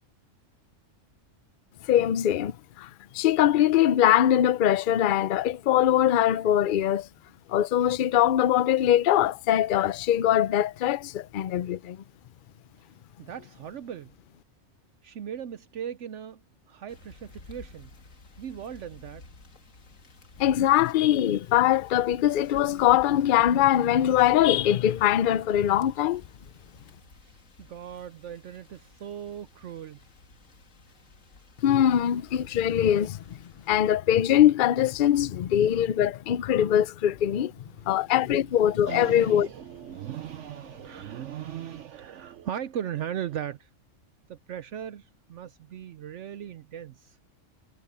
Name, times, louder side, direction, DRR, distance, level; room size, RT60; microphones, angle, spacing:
voice 1, 1.9-7.1 7.5-12.0 20.4-26.2 31.6-33.4 33.7-37.5 37.9-39.5, left 11 dB, 55° left, 0.6 m, -22 dB
voice 2, 13.2-14.1 15.0-16.4 16.7-17.9 18.4-19.2 27.2-30.0 32.5-32.6 37.7-38.4 38.9-43.7 44.3-47.2, right 10 dB, 70° right, 1.0 m, -38 dB
sound 1, 16.9-33.7, left 3 dB, 75° left, 2.3 m, -53 dB
omnidirectional pair, 1.3 m